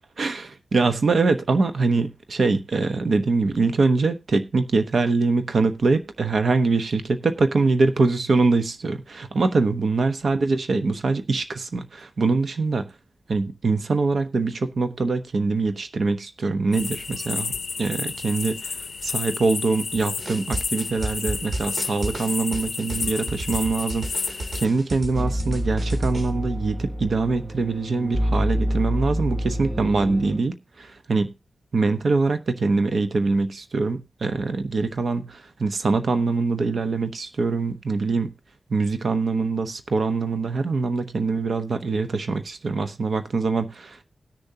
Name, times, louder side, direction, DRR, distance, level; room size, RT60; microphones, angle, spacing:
voice 1, 0.2-12.9 13.3-17.5 17.8-18.8 19.0-31.3 31.7-38.3 38.7-44.0, right 3 dB, 70° right, 0.9 m, -23 dB
sound 1, 16.7-24.7, left 5 dB, 70° left, 0.6 m, -31 dB
sound 2, 20.2-26.3, right 1 dB, 50° right, 2.3 m, -32 dB
sound 3, 25.1-30.4, equal, 15° right, 0.8 m, -27 dB
19.5 x 6.8 x 2.7 m
wide cardioid pair, 85°, 0 cm